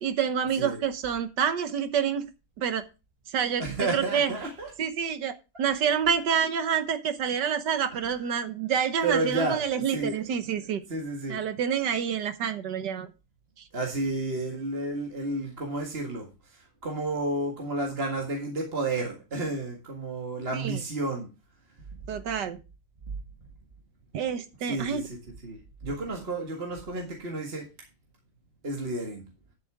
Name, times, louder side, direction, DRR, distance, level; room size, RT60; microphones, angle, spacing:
voice 1, 0.0-2.2 2.6-2.8 3.3-3.6 3.9-4.3 4.8-10.8 11.3-13.1 20.5-20.8 22.1-22.6 24.1-25.1, right 7 dB, 65° right, 10 dB, 1.6 m, -28 dB
voice 2, 3.6-4.7 7.9-8.2 9.0-10.2 10.9-11.4 13.7-21.3 24.6-25.2 25.4-27.7 28.6-29.2, right 2 dB, 30° right, 0 dB, 1.9 m, -31 dB
10.5 x 8.3 x 3.5 m, 0.28 s
omnidirectional pair, 2.1 m